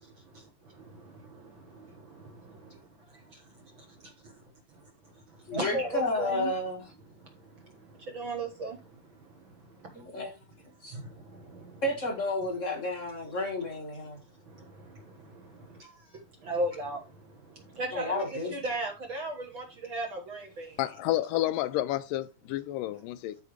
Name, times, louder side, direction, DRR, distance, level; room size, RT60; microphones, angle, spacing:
voice 1, 0.9-2.7 5.5-6.5 8.1-8.8 10.9-11.8 14.5-15.4 16.4-17.0 17.7-20.8, right 2 dB, 50° right, 1.6 m, -36 dB
voice 2, 5.5-6.8 9.9-10.3 10.8-10.9 11.8-14.2 17.9-18.5, left 2 dB, 45° left, 0.9 m, -31 dB
voice 3, 20.8-23.4, left 15 dB, 85° left, 2.2 m, -30 dB
13.5 x 4.8 x 3.1 m
omnidirectional pair, 3.9 m